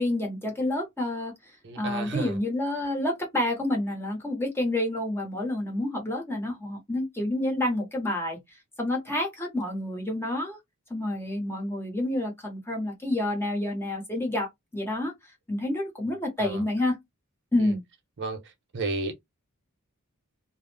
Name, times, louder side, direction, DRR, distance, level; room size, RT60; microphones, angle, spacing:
voice 1, 0.0-1.3 1.8-8.4 8.8-10.6 10.9-14.5 14.7-15.1 15.5-17.0 17.5-17.8, left 1 dB, 10° left, 1.0 m, -28 dB
voice 2, 1.6-2.3 16.4-16.6 18.2-18.4 18.7-19.1, right 3 dB, 55° right, 0.6 m, -31 dB
2.4 x 2.0 x 3.2 m
head